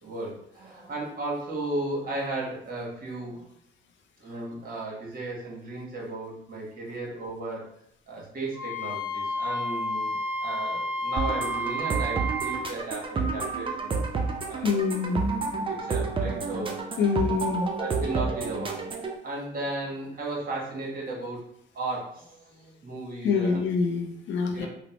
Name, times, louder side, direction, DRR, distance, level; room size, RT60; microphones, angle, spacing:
voice 1, 0.0-3.5 4.2-7.7 8.1-10.1 10.4-14.1 14.3-14.8 15.6-17.0 17.6-18.8 19.2-21.4 21.7-23.6 24.5-24.7, right 2 dB, 45° right, -4 dB, 1.2 m, -35 dB
Wind instrument woodwind instrument, 8.5-12.7, equal, 10° right, 0.9 m, -30 dB
sound 1, 11.2-19.2, right 4 dB, 25° right, 0.4 m, -30 dB
voice 2, 14.6-15.2 17.0-17.7 23.2-24.7, left 5 dB, 70° left, 4 dB, 0.5 m, -25 dB
3.1 x 2.0 x 2.9 m, 0.71 s
cardioid pair, 90°, 20 cm